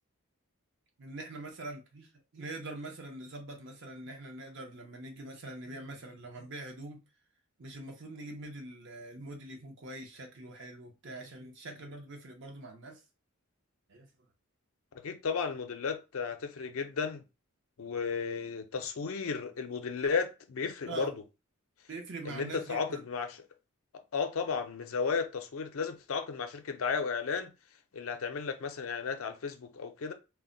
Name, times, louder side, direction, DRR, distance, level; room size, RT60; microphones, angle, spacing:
voice 1, 1.0-7.0 7.6-13.0 13.9-14.1 20.9-21.1 21.9-23.0, right 2 dB, 55° right, 0.7 m, -43 dB
voice 2, 15.0-17.2 17.8-21.2 22.2-23.4 23.9-27.5 27.9-30.1, left 5 dB, 65° left, 0.5 m, -34 dB
2.3 x 2.1 x 3.8 m
head